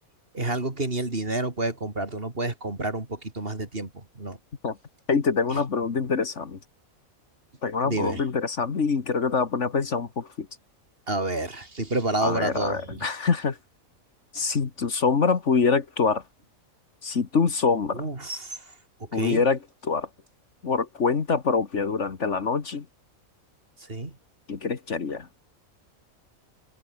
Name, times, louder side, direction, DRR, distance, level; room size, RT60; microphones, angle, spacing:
voice 1, 0.3-4.4 5.5-5.6 7.8-8.2 11.1-13.1 17.9-18.6 19.0-19.5 23.9-24.2, right 2 dB, 40° right, 3.5 m, -29 dB
voice 2, 5.1-6.6 7.6-10.5 12.2-13.6 14.3-16.2 17.0-18.0 19.1-20.1 20.6-22.9 24.5-25.3, left 5 dB, 55° left, 1.9 m, -25 dB
omnidirectional pair, 1.5 m